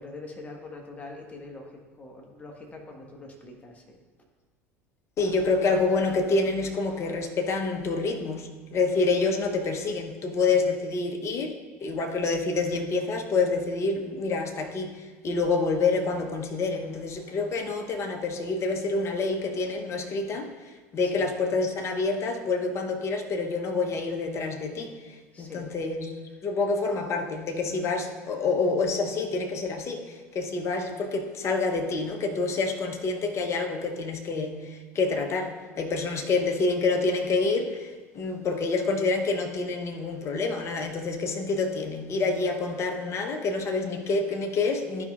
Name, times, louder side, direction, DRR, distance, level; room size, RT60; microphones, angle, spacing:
voice 1, 0.0-4.0 21.0-21.3 25.3-25.7 26.2-26.7 36.0-36.3, left 2 dB, 20° left, 0 dB, 1.5 m, -44 dB
voice 2, 5.2-20.5 20.9-26.1 26.4-45.0, left 3 dB, 40° left, 4 dB, 1.0 m, -27 dB
12.0 x 5.3 x 2.5 m, 1.3 s
figure-of-eight pair, 70°, 8 cm